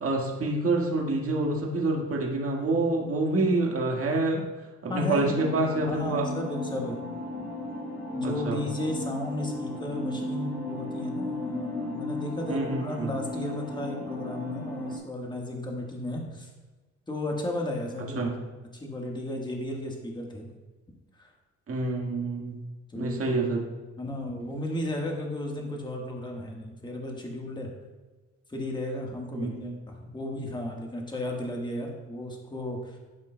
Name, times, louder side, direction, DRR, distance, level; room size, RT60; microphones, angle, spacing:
voice 1, 0.0-4.4 4.8-6.2 8.2-8.6 12.5-13.1 18.1-18.3 21.7-22.6 22.9-23.6 29.3-29.7, right 2 dB, 50° right, -1 dB, 1.7 m, -27 dB
voice 2, 4.9-5.4 5.9-7.0 8.1-16.5 17.1-18.3 18.7-20.5 21.1-21.3 22.9-23.4 24.0-27.7 28.5-33.0, left 1 dB, 15° left, 0 dB, 1.4 m, -34 dB
sound 1, 5.2-15.0, left 1 dB, 65° left, 1.5 m, -35 dB
12.0 x 5.1 x 2.2 m, 1.2 s
cardioid pair, 90°, 30 cm